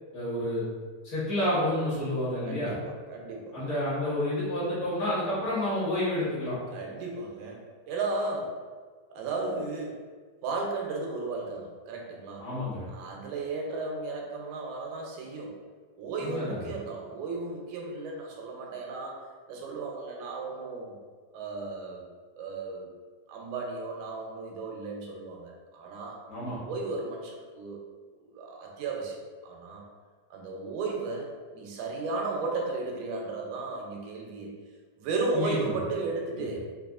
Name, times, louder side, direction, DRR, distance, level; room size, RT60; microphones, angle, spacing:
voice 1, 0.1-0.6 1.0-2.7 3.5-6.6 12.4-12.8 16.2-16.7 26.3-26.6 35.3-35.8 36.3-36.4, left 1 dB, 50° left, -10 dB, 1.1 m, -29 dB
voice 2, 2.5-3.6 6.7-8.6 9.1-10.0 10.4-12.5 12.9-15.6 16.0-21.0 21.3-22.0 22.4-22.9 23.3-26.2 26.6-27.8 28.2-29.9 30.3-34.5 35.0-36.6, right 3 dB, 85° right, 0 dB, 2.1 m, -35 dB
5.1 x 2.3 x 2.4 m, 1.5 s
omnidirectional pair, 3.5 m